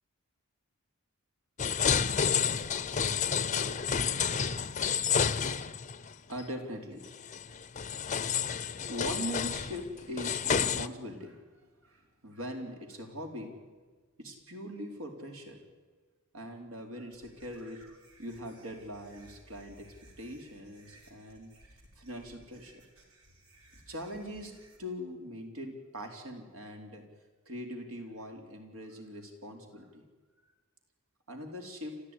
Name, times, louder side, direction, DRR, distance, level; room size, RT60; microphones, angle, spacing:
sound 1, 1.6-6.1 6.4-6.5 7.2-10.9, left 7 dB, 35° left, 0.7 m, -30 dB
voice 1, 6.3-7.1 8.9-13.6 14.2-15.6 16.3-19.9 20.2-21.5 22.0-22.8 23.7-27.0 27.5-30.0 31.3-32.0, equal, 70° right, 4 dB, 4.1 m, -41 dB
sound 2, 17.1-24.8, right 1 dB, 85° right, 5.2 m, -59 dB
29.5 x 13.5 x 9.9 m, 1.4 s
head